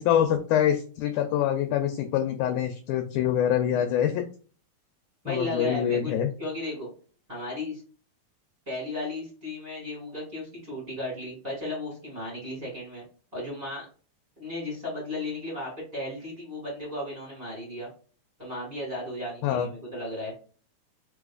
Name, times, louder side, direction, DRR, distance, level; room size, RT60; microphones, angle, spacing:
voice 1, 0.0-4.3 5.3-6.3 19.4-19.7, left 10 dB, 80° left, 6 dB, 1.8 m, -25 dB
voice 2, 5.2-6.9 7.3-7.8 8.6-13.0 13.3-13.8 14.4-17.9 18.4-20.3, left 1 dB, 25° right, -4 dB, 1.5 m, -35 dB
4.8 x 4.0 x 2.4 m, 0.40 s
omnidirectional pair, 3.9 m